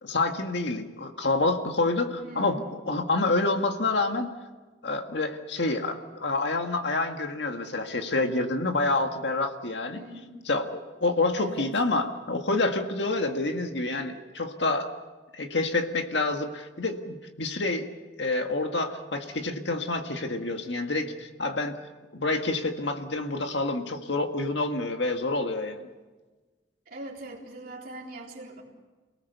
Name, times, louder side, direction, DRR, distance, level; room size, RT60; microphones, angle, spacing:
voice 1, 0.0-2.6 2.9-4.3 4.8-10.0 10.5-14.9 15.3-17.8 18.2-21.8 22.1-25.8, left 2 dB, 65° left, 5 dB, 1.8 m, -28 dB
voice 2, 2.2-2.6 9.9-10.3 11.3-11.7 26.9-28.6, right 2 dB, 50° right, -2 dB, 3.8 m, -41 dB
29.0 x 18.5 x 6.9 m, 1.3 s
head